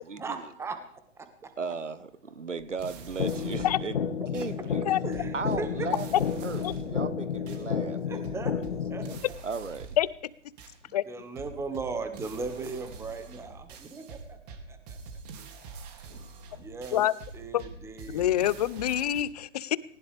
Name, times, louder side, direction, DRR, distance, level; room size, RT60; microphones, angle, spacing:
voice 1, 0.1-0.8 1.2-1.3 4.6-4.7 5.0-5.9 8.1-8.6 8.9-9.3 11.1-15.0 16.6-17.1 17.3-18.4, right 3 dB, 5° right, 8 dB, 1.5 m, -37 dB
voice 2, 1.6-4.0 4.3-4.8 5.3-6.1 6.4-8.2 9.4-9.9, right 5 dB, 80° right, 15 dB, 1.3 m, -36 dB
sound 1, 2.6-3.9 4.3-4.5 5.1-7.0 7.5-7.6 8.2-10.1 10.6-10.8 11.4-19.2, right 4 dB, 35° right, 2.6 m, -45 dB
sound 2, 3.2-9.2, left 7 dB, 55° left, 2.0 m, -31 dB
voice 3, 18.1-19.8, left 12 dB, 35° left, 20 dB, 0.6 m, -26 dB
19.5 x 19.0 x 3.4 m, 0.64 s
figure-of-eight pair, 125°, 36 cm